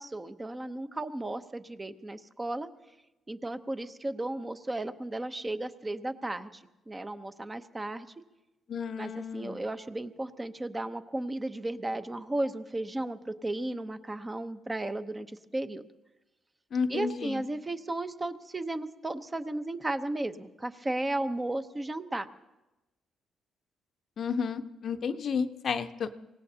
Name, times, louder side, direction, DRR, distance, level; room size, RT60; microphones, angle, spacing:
voice 1, 0.0-2.7 3.3-8.1 9.0-15.8 16.9-22.3, right 2 dB, 20° right, 9 dB, 0.8 m, -34 dB
voice 2, 8.7-9.6 16.7-17.4 24.2-26.1, left 6 dB, 55° left, 10 dB, 0.7 m, -32 dB
24.5 x 17.5 x 2.8 m, 1.0 s
cardioid pair, 90°, 0 cm